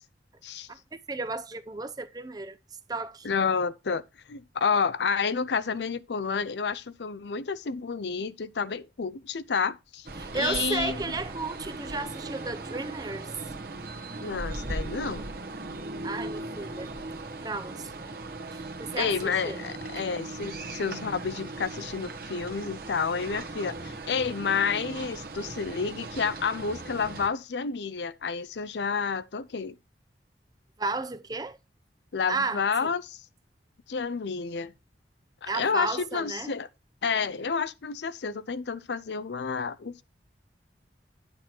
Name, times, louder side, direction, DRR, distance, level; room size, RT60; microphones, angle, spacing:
voice 1, 1.1-2.6 2.9-3.3 10.2-13.3 16.0-16.9 17.4-17.9 18.5-19.6 20.0-20.1 30.8-31.6 32.3-32.9 35.5-36.5, right 3 dB, 20° right, 0.6 m, -33 dB
voice 2, 3.2-4.0 4.3-10.1 10.3-11.0 14.2-15.3 19.0-29.8 32.1-33.2 33.9-34.7 35.4-36.7 37.0-40.0, left 5 dB, 75° left, 0.5 m, -30 dB
sound 1, 10.1-27.3, right 2 dB, 55° right, 1.1 m, -38 dB
9.5 x 6.2 x 4.4 m
head